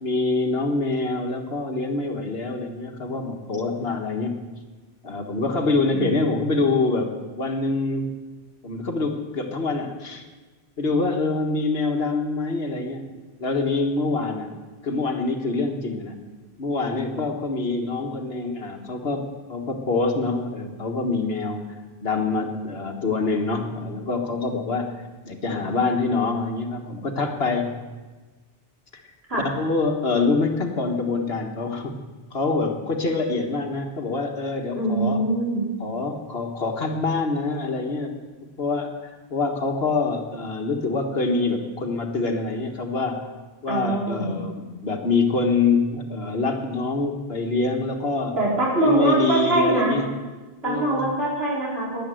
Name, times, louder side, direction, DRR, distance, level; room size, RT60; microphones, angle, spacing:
voice 1, 0.0-4.4 5.0-8.1 8.6-10.3 10.8-13.1 13.4-14.5 14.8-16.2 16.6-21.6 22.0-27.8 28.9-29.0 29.4-31.9 32.3-35.2 35.8-38.1 38.4-43.3 43.6-48.4 48.8-50.1 50.6-51.1, left 3 dB, 75° left, 4 dB, 1.7 m, -25 dB
voice 2, 34.8-35.7 43.7-44.4 48.4-50.0 50.6-52.0, right 1 dB, 75° right, -6 dB, 5.1 m, -23 dB
13.0 x 10.0 x 7.8 m, 1.3 s
omnidirectional pair, 1.1 m